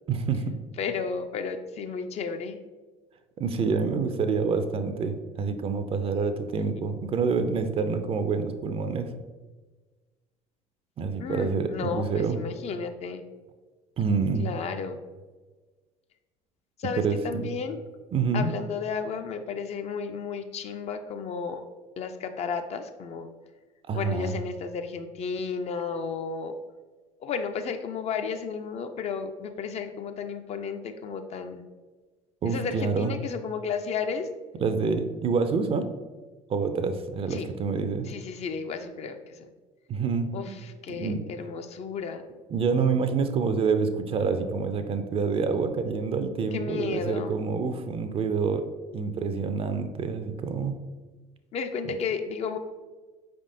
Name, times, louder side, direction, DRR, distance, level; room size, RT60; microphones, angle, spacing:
voice 1, 0.1-0.6 3.4-9.1 11.0-12.4 14.0-14.5 17.0-17.5 18.1-18.5 23.9-24.4 32.4-33.1 34.6-35.9 36.5-38.1 39.9-40.6 40.9-41.2 42.5-48.6 48.9-50.8 51.9-52.0, right 5 dB, 35° right, 9 dB, 0.4 m, -27 dB
voice 2, 0.8-2.6 6.6-6.8 11.2-13.2 14.4-15.0 16.8-17.8 18.3-21.6 22.0-23.3 23.9-26.5 27.2-31.6 32.4-34.3 37.3-37.5 38.1-39.5 40.3-42.2 46.5-47.4 51.5-52.6, left 5 dB, 40° left, 7 dB, 0.4 m, -33 dB
4.9 x 3.5 x 2.6 m, 1.3 s
hypercardioid pair, 65°, 18 cm